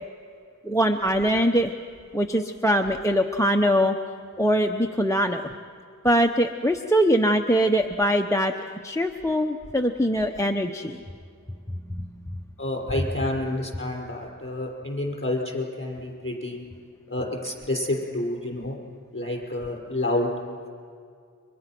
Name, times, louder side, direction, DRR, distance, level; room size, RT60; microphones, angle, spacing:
voice 1, 0.6-1.7 2.1-4.0 4.4-5.4 6.0-8.5 8.8-11.0 11.9-12.1, equal, 10° left, 5 dB, 0.9 m, -22 dB
voice 2, 12.6-16.6 17.1-18.8 19.1-20.3, left 1 dB, 35° left, -2 dB, 5.7 m, -29 dB
30.0 x 24.0 x 6.1 m, 2.3 s
wide cardioid pair, 50°, 33 cm